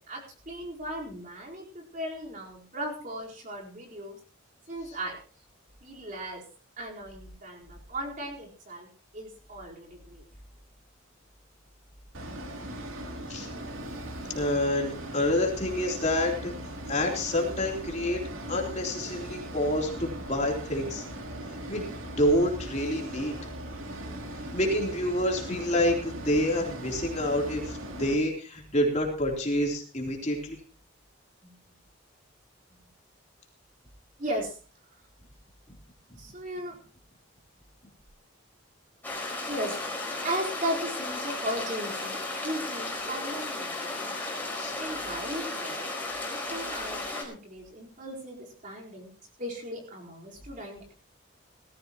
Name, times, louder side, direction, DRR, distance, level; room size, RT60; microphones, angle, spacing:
voice 1, 0.1-4.2 4.7-5.2 5.8-6.4 6.8-8.9 9.1-10.2 31.4-31.5 34.2-34.5 36.2-36.7 39.5-39.8 40.2-44.3 44.8-45.8 46.5-49.1 49.4-50.9, right 1 dB, 40° right, -1 dB, 4.4 m, -37 dB
sound 1, 12.1-28.1, right 1 dB, 85° right, 3.1 m, -39 dB
voice 2, 14.3-16.5 16.9-18.2 18.5-21.0 21.7-21.9 22.2-23.4 24.5-30.6 44.5-44.8, left 1 dB, 35° left, 0 dB, 3.5 m, -28 dB
sound 2, 39.0-47.2, left 2 dB, 10° left, 4.6 m, -34 dB
19.0 x 15.0 x 3.0 m, 0.37 s
head